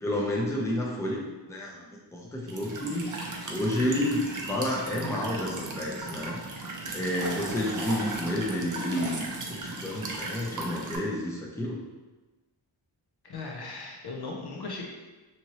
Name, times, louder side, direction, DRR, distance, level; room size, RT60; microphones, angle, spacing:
voice 1, 0.0-3.1 3.5-6.4 6.9-11.8, left 1 dB, 5° left, -3 dB, 0.6 m, -30 dB
Walk footsteps / Chirp tweet / Stream, 2.5-11.0, right 2 dB, 40° right, 0.5 m, -36 dB
voice 2, 13.3-14.9, left 3 dB, 55° left, -1 dB, 0.5 m, -37 dB
2.8 x 2.6 x 2.9 m, 1.2 s
cardioid pair, 55°, 48 cm